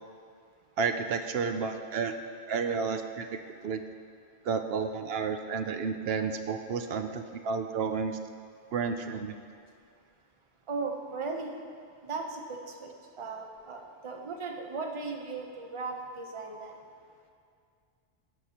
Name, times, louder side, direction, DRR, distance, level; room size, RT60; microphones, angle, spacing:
voice 1, 0.8-2.1 2.5-3.3 3.6-3.8 4.4-8.2 8.7-9.3, right 5 dB, 65° right, 7 dB, 0.7 m, -31 dB
voice 2, 10.7-11.5 12.0-12.9 13.2-16.8, right 4 dB, 30° right, 2 dB, 0.7 m, -37 dB
17.0 x 6.6 x 2.9 m, 2.2 s
omnidirectional pair, 1.2 m